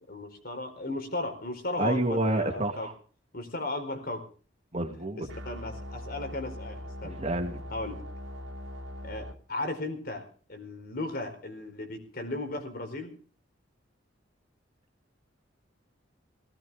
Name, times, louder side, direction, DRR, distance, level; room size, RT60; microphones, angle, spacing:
voice 1, 0.1-2.9 3.3-4.3 5.1-7.2 7.7-8.0 9.0-13.1, left 2 dB, 50° left, 6 dB, 4.5 m, -36 dB
voice 2, 1.8-2.9 4.7-5.3 7.0-7.6, right 1 dB, 35° right, 5 dB, 2.6 m, -29 dB
sound 1, 5.3-9.3, equal, 75° right, 2.4 m, -41 dB
18.5 x 18.0 x 3.7 m, 0.39 s
head